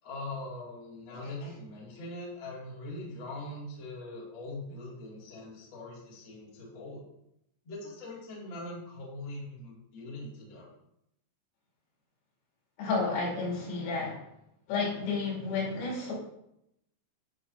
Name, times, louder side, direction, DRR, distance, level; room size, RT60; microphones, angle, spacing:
voice 1, 0.0-7.0 7.6-10.7, left 2 dB, 40° left, -5 dB, 2.0 m, -42 dB
voice 2, 12.8-14.2 14.7-16.1, left 4 dB, 80° left, -4 dB, 5.1 m, -31 dB
11.5 x 5.9 x 2.7 m, 0.79 s
omnidirectional pair, 5.8 m